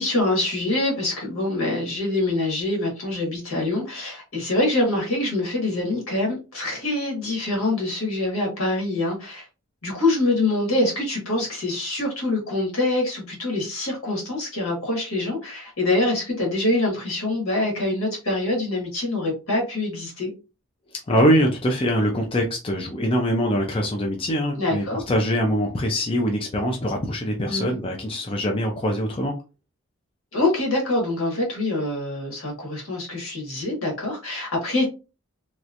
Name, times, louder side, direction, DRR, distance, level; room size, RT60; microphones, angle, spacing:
voice 1, 0.0-9.4 9.8-20.3 24.6-25.0 27.5-27.7 30.3-34.9, left 2 dB, 75° left, 1.6 m, -25 dB
voice 2, 21.1-29.3, equal, 25° left, 0.5 m, -23 dB
3.1 x 3.0 x 2.5 m
head